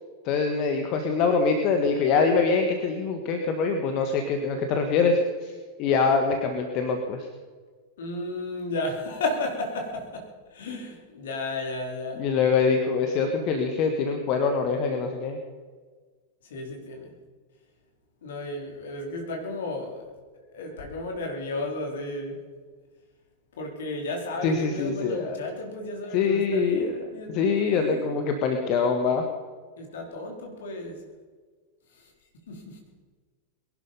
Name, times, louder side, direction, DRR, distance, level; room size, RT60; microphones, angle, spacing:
voice 1, 0.2-5.5 5.8-7.3 12.2-15.4 24.4-25.4 26.1-26.9 27.3-29.2, left 5 dB, 40° left, 5 dB, 1.7 m, -24 dB
voice 2, 8.0-12.2 16.4-17.1 18.2-20.0 20.4-22.4 23.5-28.1 29.8-31.0 31.9-32.1 32.5-32.8, left 2 dB, 60° left, 2 dB, 3.9 m, -33 dB
22.0 x 11.5 x 5.4 m, 1.5 s
figure-of-eight pair, 90°, 0 cm